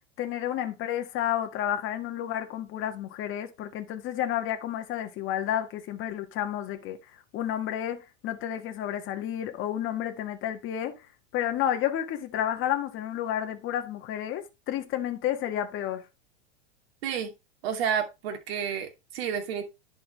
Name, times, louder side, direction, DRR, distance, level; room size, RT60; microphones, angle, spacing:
voice 1, 0.2-10.9 11.3-16.0, left 11 dB, 40° left, 1.6 m, -31 dB
voice 2, 17.0-17.3 17.6-19.6, right 7 dB, 70° right, 2.6 m, -30 dB
11.0 x 5.6 x 3.1 m
hypercardioid pair, 115°, 32 cm